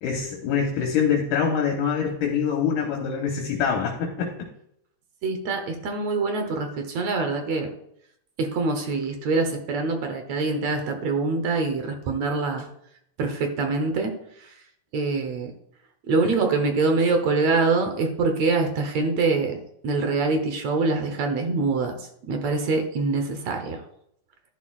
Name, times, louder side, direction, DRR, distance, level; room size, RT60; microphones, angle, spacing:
voice 1, 0.0-4.3, left 7 dB, 75° left, 0 dB, 2.7 m, -24 dB
voice 2, 5.2-7.7 8.4-12.6 13.2-14.1 14.9-15.5 16.1-23.8, right 3 dB, 65° right, 5 dB, 2.0 m, -24 dB
12.0 x 11.0 x 2.4 m, 0.73 s
omnidirectional pair, 3.8 m